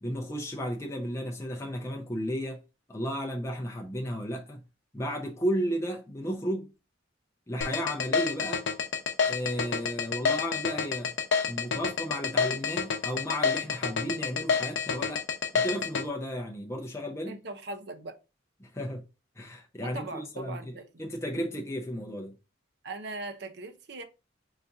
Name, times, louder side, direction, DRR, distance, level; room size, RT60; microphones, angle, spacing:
voice 1, 0.0-2.6 2.9-4.6 4.9-6.7 7.5-8.6 9.2-11.2 11.5-15.2 15.5-17.4 18.6-19.0 19.4-20.7 21.0-22.3, equal, 15° left, 0.5 m, -33 dB
sound 1, 7.6-16.0, left 5 dB, 60° left, 0.6 m, -28 dB
voice 2, 17.3-18.2 19.8-21.1 22.8-24.0, right 2 dB, 55° right, 0.6 m, -40 dB
4.0 x 2.5 x 3.4 m
head